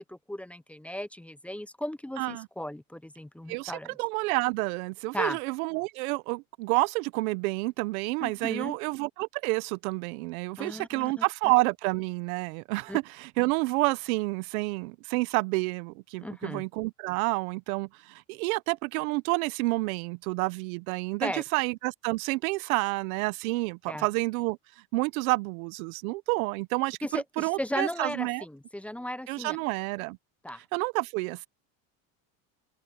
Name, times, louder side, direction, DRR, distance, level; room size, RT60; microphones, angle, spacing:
voice 1, 0.0-4.0 5.1-5.4 8.2-8.8 10.6-11.2 12.9-13.0 16.2-16.6 21.2-21.4 23.9-24.1 27.0-29.6 30.4-30.6, left 1 dB, 5° left, 0.4 m, -36 dB
voice 2, 2.2-2.5 3.5-3.7 4.0-24.6 24.9-28.4 29.3-30.2 30.7-31.5, right 24 dB, 85° right, 0.7 m, -29 dB
supercardioid pair, 115°, 42 cm